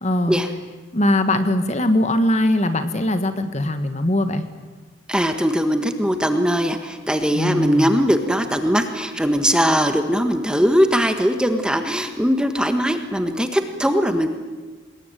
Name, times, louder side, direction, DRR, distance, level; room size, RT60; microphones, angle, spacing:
voice 1, 0.0-0.4 0.9-4.5 7.3-8.0, left 1 dB, 35° left, 9 dB, 1.6 m, -21 dB
voice 2, 5.1-14.3, equal, 5° right, 7 dB, 1.5 m, -20 dB
25.0 x 21.0 x 9.3 m, 1.4 s
head